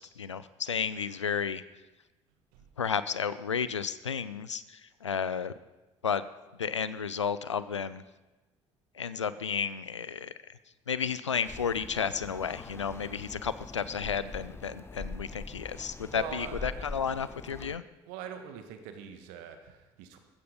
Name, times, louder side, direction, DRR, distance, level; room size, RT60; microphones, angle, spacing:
voice 1, 0.0-1.6 2.8-5.5 6.0-6.3 6.6-8.0 8.9-10.3 10.9-17.8, left 7 dB, 90° left, 16 dB, 0.5 m, -32 dB
sound 1, 11.4-17.8, left 3 dB, 15° left, 0.7 m, -43 dB
voice 2, 16.1-16.9 18.1-20.2, right 8 dB, 65° right, 7 dB, 1.7 m, -43 dB
14.5 x 14.5 x 5.1 m, 1.1 s
figure-of-eight pair, 55°, 15 cm